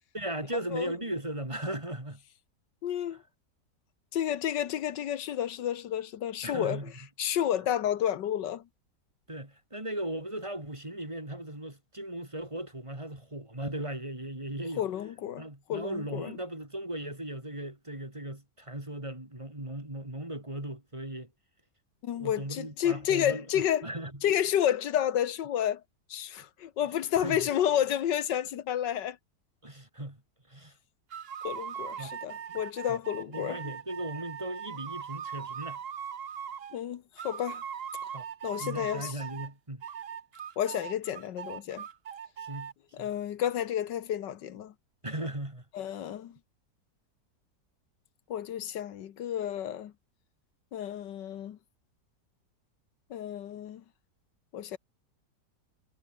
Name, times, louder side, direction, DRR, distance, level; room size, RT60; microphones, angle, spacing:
voice 1, 0.1-2.2 6.4-6.9 9.3-14.8 15.4-21.3 22.1-24.2 27.1-27.4 29.6-30.2 30.5-30.7 32.0-32.1 32.5-32.6 33.3-35.8 38.1-38.3 38.6-39.8 42.4-42.7 43.0-43.1 45.0-45.6, right 1 dB, 15° right, 3.5 m, -37 dB
voice 2, 2.8-3.2 4.1-6.9 7.2-8.6 14.8-15.4 15.7-16.4 22.0-23.9 24.2-25.8 26.1-29.2 31.4-33.6 36.7-37.6 38.4-39.2 40.6-41.8 42.9-44.7 45.7-46.4 48.3-49.9 50.7-51.6 53.1-53.8 54.5-54.8, left 10 dB, 85° left, 1.7 m, -30 dB
sound 1, 31.1-36.8 37.2-39.5 39.8-42.7, right 8 dB, 45° right, 0.8 m, -40 dB
omnidirectional pair, 1.9 m